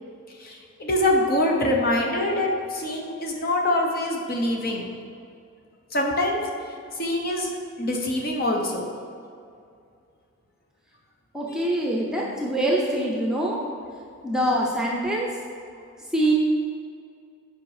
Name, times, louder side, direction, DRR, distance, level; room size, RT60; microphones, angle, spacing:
voice 1, 0.4-4.9 5.9-6.4 6.9-7.5 7.8-8.9 11.5-11.9, left 1 dB, 45° left, 0 dB, 1.1 m, -25 dB
voice 2, 11.3-13.6 14.2-15.3 16.1-16.3, right 1 dB, 5° right, -2 dB, 0.8 m, -24 dB
9.1 x 5.3 x 4.9 m, 2.3 s
head